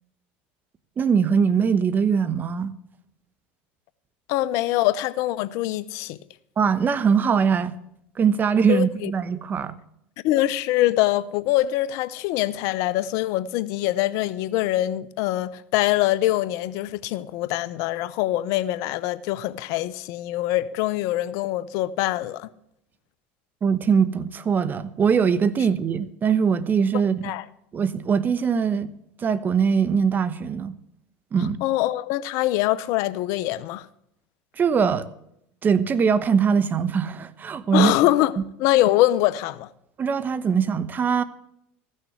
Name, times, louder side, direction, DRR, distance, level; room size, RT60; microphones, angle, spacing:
voice 1, 1.0-2.7 6.6-7.7 8.2-9.7 23.6-27.3 27.7-28.9 29.2-30.8 31.3-31.6 34.6-35.1 35.6-38.0 40.0-41.2, right 6 dB, 30° right, 1.0 m, -21 dB
voice 2, 4.3-6.2 8.7-9.1 10.2-22.5 27.2-27.4 31.6-33.9 37.7-38.3 38.6-39.7, left 15 dB, 65° left, 0.7 m, -23 dB
14.5 x 6.5 x 7.9 m
hypercardioid pair, 90°, 6 cm